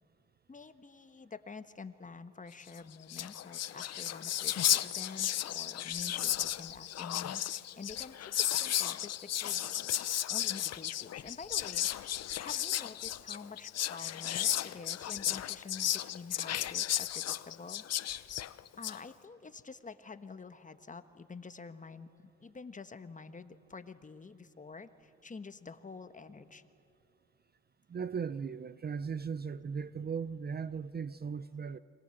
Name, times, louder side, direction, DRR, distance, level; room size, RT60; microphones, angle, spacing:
voice 1, 0.5-9.9 10.3-11.9 12.4-18.3 18.8-26.7, left 4 dB, 25° left, 10 dB, 1.3 m, -48 dB
Whispering, 2.8-2.9 3.0-19.0, left 11 dB, 55° left, 0.7 m, -34 dB
voice 2, 27.9-31.8, right 6 dB, 30° right, 15 dB, 0.6 m, -37 dB
29.5 x 24.0 x 7.9 m, 2.8 s
cardioid pair, 90°, 30 cm